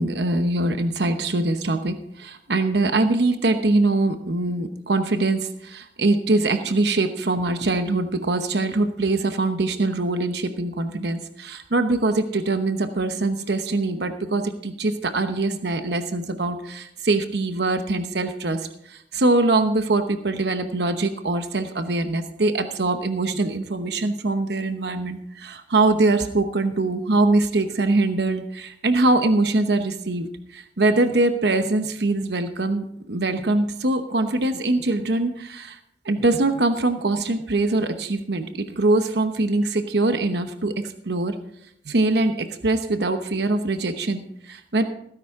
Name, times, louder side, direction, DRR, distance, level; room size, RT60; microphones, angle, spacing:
voice 1, 0.0-35.8 36.0-41.3 41.9-44.8, right 2 dB, 65° right, 8 dB, 0.9 m, -23 dB
17.0 x 10.0 x 3.7 m, 0.74 s
head